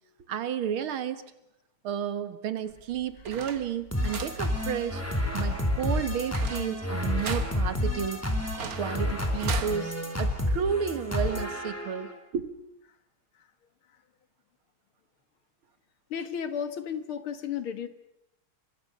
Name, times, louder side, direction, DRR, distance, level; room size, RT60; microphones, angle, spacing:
voice 1, 0.3-1.3 1.8-5.0 5.3-8.2 8.6-12.5, right 8 dB, 75° right, 12 dB, 2.3 m, -32 dB
sound 1, 2.7-9.8, right 6 dB, 45° right, 1.9 m, -41 dB
sound 2, 3.9-12.1, left 1 dB, 5° left, 3.9 m, -30 dB
voice 2, 5.4-5.8 16.1-17.9, left 8 dB, 80° left, 11 dB, 2.5 m, -34 dB
28.5 x 25.0 x 6.8 m, 0.86 s
omnidirectional pair, 2.3 m